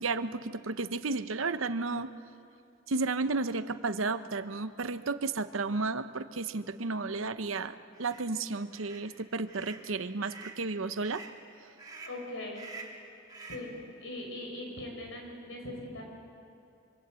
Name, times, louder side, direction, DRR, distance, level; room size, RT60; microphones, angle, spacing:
voice 1, 0.0-2.1 2.9-11.2, right 3 dB, 85° right, 11 dB, 0.9 m, -33 dB
sound 1, 7.9-8.2 8.7-9.1 9.5-9.8 10.2-10.6 11.0-11.4 11.8-12.2 12.5-13.0 13.3-13.7, right 4 dB, 20° right, 3.1 m, -47 dB
voice 2, 12.0-12.6 13.5-16.0, left 1 dB, 75° left, 1 dB, 6.6 m, -40 dB
26.0 x 24.5 x 8.3 m, 2.5 s
head